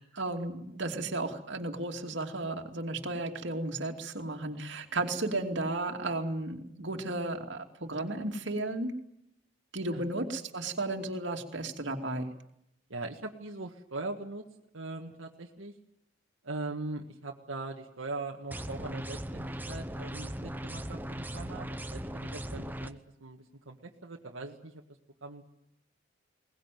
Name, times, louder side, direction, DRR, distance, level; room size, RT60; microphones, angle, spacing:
voice 1, 0.2-8.9 9.7-12.3, right 2 dB, 65° right, 3 dB, 2.7 m, -34 dB
voice 2, 12.9-14.4 14.7-15.7 16.4-24.8 25.2-25.4, right 2 dB, 85° right, 0 dB, 1.8 m, -41 dB
sound 1, 18.5-22.9, right 1 dB, 10° right, 0.9 m, -38 dB
22.0 x 19.0 x 9.3 m, 0.78 s
head